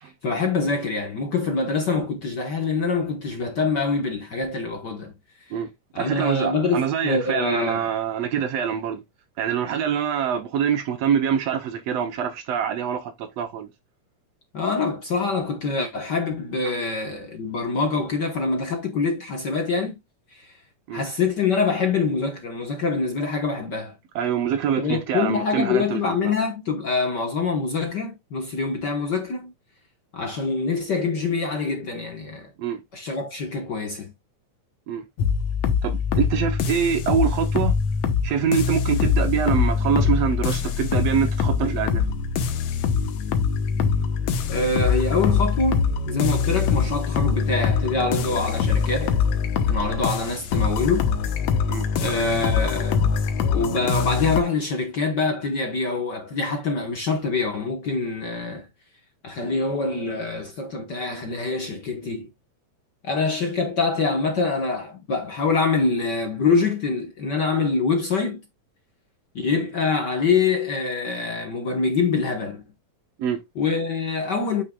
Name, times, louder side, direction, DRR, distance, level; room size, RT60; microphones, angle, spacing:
voice 1, 0.2-5.1 5.9-7.9 14.5-20.0 20.3-20.6 20.9-23.9 24.8-29.5 30.1-32.5 32.9-34.1 44.5-49.2 49.5-51.1 51.9-53.2 53.5-58.7 59.2-62.3 63.0-68.4 69.3-72.6 73.5-74.6, left 4 dB, 50° left, 1.4 m, -25 dB
voice 2, 6.0-9.0 9.4-13.7 16.7-16.8 20.9-21.0 24.2-26.3 32.6-32.8 34.9-35.0 35.8-37.8 38.2-42.0 51.7-51.9 73.2-73.4, right 8 dB, 70° right, 1.8 m, -25 dB
sound 1, 35.2-54.4, left 6 dB, 75° left, 2.3 m, -23 dB
9.1 x 6.6 x 2.3 m
omnidirectional pair, 3.3 m